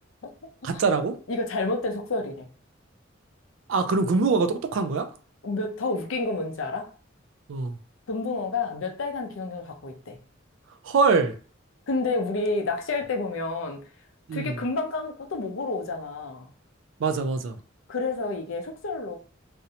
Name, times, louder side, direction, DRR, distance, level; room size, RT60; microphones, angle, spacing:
voice 1, 0.6-1.2 3.7-5.1 7.5-7.8 10.8-11.3 14.3-14.6 17.0-17.6, right 4 dB, 70° right, 0.4 m, -23 dB
voice 2, 1.3-2.5 5.4-6.9 8.1-10.2 11.9-13.8 14.3-16.5 17.9-19.2, left 3 dB, 85° left, 0.5 m, -29 dB
2.6 x 2.0 x 2.7 m
head